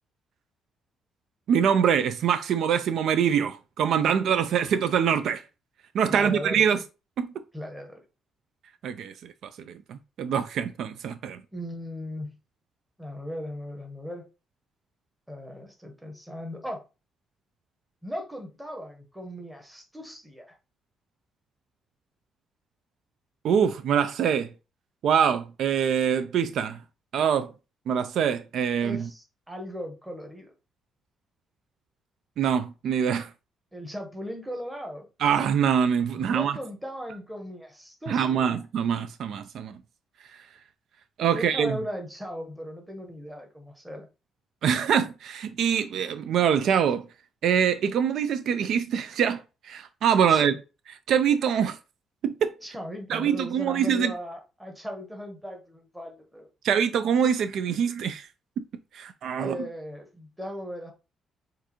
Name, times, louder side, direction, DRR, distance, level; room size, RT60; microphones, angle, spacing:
voice 1, 1.5-5.4 5.9-6.8 7.2-7.3 8.8-9.3 9.7-11.4 23.4-24.5 25.0-26.8 27.1-27.5 27.9-29.1 32.4-33.3 35.2-36.5 38.1-39.7 41.2-41.8 44.6-47.1 47.4-50.5 51.1-51.8 52.2-52.5 53.1-54.1 56.6-58.3 58.6-58.7 58.9-59.6, right 8 dB, 65° right, 0.4 m, -24 dB
voice 2, 6.1-6.6 7.5-8.0 11.5-12.4 13.0-14.3 15.3-16.8 18.0-20.6 28.8-30.5 33.7-35.1 36.1-38.6 41.3-44.1 50.3-50.6 52.6-56.5 59.4-60.9, equal, 5° right, 1.0 m, -37 dB
6.6 x 2.5 x 2.9 m
cardioid pair, 135°, 0 cm